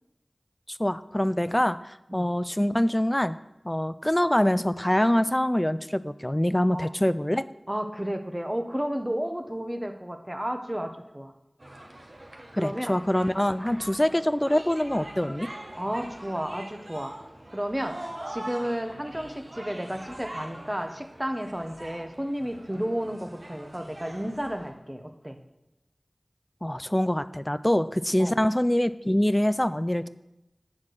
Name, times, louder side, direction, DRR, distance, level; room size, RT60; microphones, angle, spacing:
voice 1, 0.7-3.3 3.6-7.4 12.5-15.5 26.6-30.1, left 1 dB, 15° left, 14 dB, 0.3 m, -25 dB
voice 2, 7.7-11.3 12.6-12.9 13.7-13.8 15.7-17.1 17.5-18.0 18.3-25.4 28.2-28.4, equal, 15° right, 6 dB, 1.0 m, -32 dB
sound 1, 11.6-24.7, right 1 dB, 55° right, 1.2 m, -43 dB
8.6 x 4.3 x 6.4 m, 0.91 s
wide cardioid pair, 40°, 0 cm